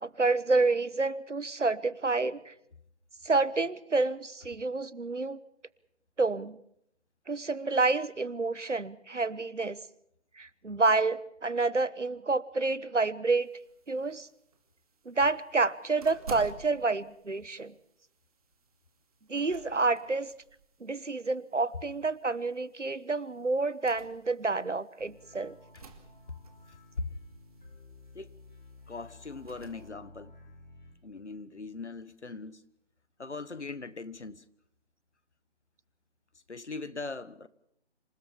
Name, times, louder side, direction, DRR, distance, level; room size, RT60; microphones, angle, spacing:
voice 1, 0.0-2.5 3.2-5.4 6.2-6.6 7.3-9.8 10.4-13.5 13.9-14.3 15.0-17.7 19.3-20.3 20.8-25.6, right 3 dB, 85° right, 1.3 m, -29 dB
sound 1, 13.4-29.9, right 5 dB, 30° right, 2.5 m, -53 dB
sound 2, 25.0-30.9, left 2 dB, 40° left, 7.1 m, -54 dB
voice 2, 26.7-27.1 28.1-28.3 28.9-30.4 31.0-32.6 33.2-34.4 36.5-37.5, left 3 dB, 70° left, 1.6 m, -40 dB
27.0 x 17.0 x 7.1 m
figure-of-eight pair, 155°, 35 cm